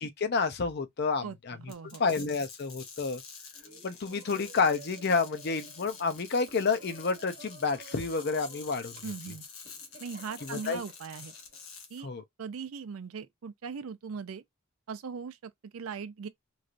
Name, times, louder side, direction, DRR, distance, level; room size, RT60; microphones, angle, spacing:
voice 1, 0.0-1.6 2.0-3.2 3.8-9.0 10.4-10.8 12.0-12.2, left 4 dB, 50° left, 0.5 m, -29 dB
voice 2, 1.2-2.0 9.0-9.4 10.0-11.3 11.9-12.1 12.4-14.4 14.9-16.3, right 5 dB, 85° right, 0.4 m, -40 dB
sound 1, 1.7-12.0, left 5 dB, 80° left, 1.0 m, -48 dB
Laughter, 3.5-11.6, right 3 dB, 45° right, 1.0 m, -53 dB
3.1 x 2.5 x 2.5 m
head